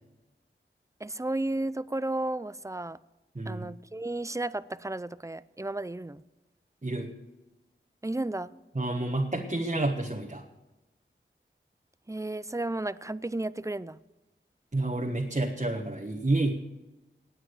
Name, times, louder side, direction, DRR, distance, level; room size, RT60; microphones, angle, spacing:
voice 1, 1.0-3.0 3.5-6.2 8.0-8.5 12.1-14.0, right 2 dB, 15° right, 17 dB, 0.5 m, -33 dB
voice 2, 3.3-3.7 6.8-7.1 8.7-10.4 14.7-16.6, right 2 dB, 35° right, 1 dB, 1.4 m, -29 dB
19.0 x 8.8 x 6.7 m, 1.0 s
wide cardioid pair, 50°, 21 cm